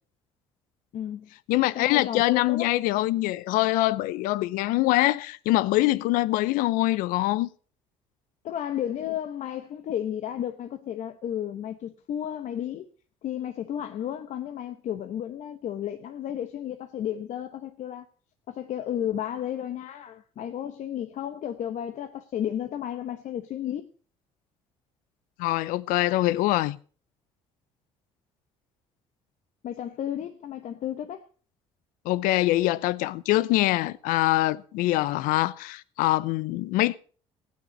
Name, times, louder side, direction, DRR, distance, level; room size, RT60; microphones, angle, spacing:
voice 1, 0.9-1.3 1.7-2.7 8.4-12.9 13.2-18.1 18.5-23.9 29.6-31.2, left 10 dB, 60° left, 1.0 m, -33 dB
voice 2, 1.5-7.5 25.4-26.8 32.1-37.0, left 17 dB, 75° left, 0.6 m, -24 dB
15.5 x 9.5 x 5.3 m
supercardioid pair, 70°, 14 cm